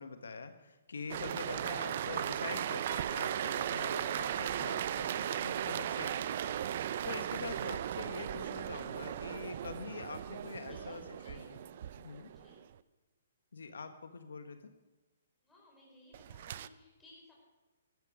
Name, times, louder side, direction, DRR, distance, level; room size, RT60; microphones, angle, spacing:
voice 1, 0.0-6.6 7.0-11.6 12.0-12.3 13.5-14.6, left 4 dB, 85° left, 8 dB, 1.3 m, -44 dB
sound 1, 1.1-12.6 16.1-16.7, right 10 dB, 50° right, 0.5 m, -37 dB
voice 2, 10.4-11.8 12.3-12.7 15.4-17.3, left 1 dB, 5° left, -3 dB, 4.6 m, -60 dB
14.0 x 13.0 x 5.0 m, 1.2 s
hypercardioid pair, 155°, 0 cm